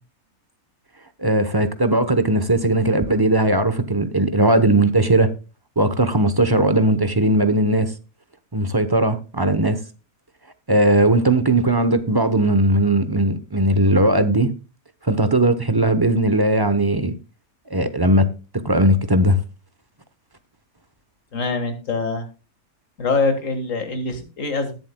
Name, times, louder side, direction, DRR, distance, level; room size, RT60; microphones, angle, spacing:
voice 1, 1.2-5.3 5.8-7.9 8.5-9.8 10.7-14.5 15.0-17.1 17.7-18.3 18.5-19.4, right 1 dB, 20° right, 0.7 m, -18 dB
voice 2, 21.3-22.3 23.0-24.7, left 3 dB, 60° left, 2.0 m, -24 dB
20.5 x 7.6 x 2.2 m
omnidirectional pair, 1.5 m